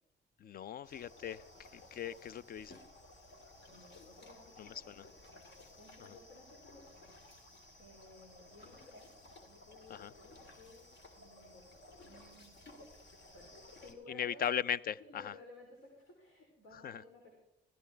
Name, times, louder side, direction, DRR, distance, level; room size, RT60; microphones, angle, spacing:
voice 1, 0.4-1.5 1.7-2.8 4.6-5.0 6.0-6.1 9.9-10.1 14.1-15.3 16.7-17.0, left 9 dB, 50° left, 0.4 m, -38 dB
sound 1, 0.8-13.9, left 2 dB, 65° left, 2.3 m, -57 dB
voice 2, 3.7-7.0 7.2-7.4 7.8-9.1 9.4-10.9 11.2-11.7 12.0-12.8 13.3-14.5 15.0-17.4, left 2 dB, 85° left, 3.4 m, -57 dB
15.0 x 14.0 x 3.4 m
cardioid pair, 90°, 20 cm